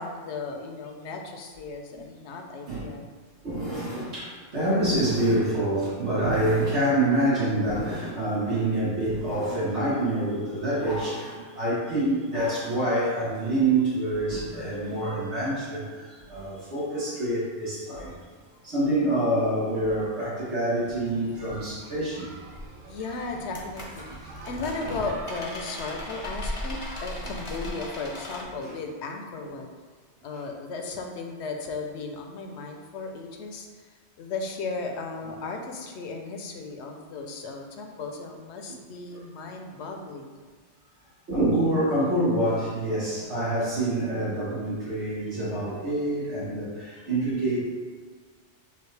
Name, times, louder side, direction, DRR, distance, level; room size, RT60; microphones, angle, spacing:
voice 1, 0.0-3.1 22.9-29.7 30.2-33.7 34.2-40.4, left 3 dB, 75° left, 3 dB, 0.9 m, -35 dB
voice 2, 3.4-18.1 18.6-22.3 28.6-28.7 39.1-39.2 41.3-47.6, right 1 dB, 70° right, -10 dB, 1.7 m, -26 dB
sound 1, 20.9-27.7, right 2 dB, 50° right, 0.8 m, -45 dB
sound 2, 22.5-22.7 23.4-28.4, left 1 dB, 35° left, 0.7 m, -37 dB
6.7 x 2.4 x 3.3 m, 1.5 s
omnidirectional pair, 1.2 m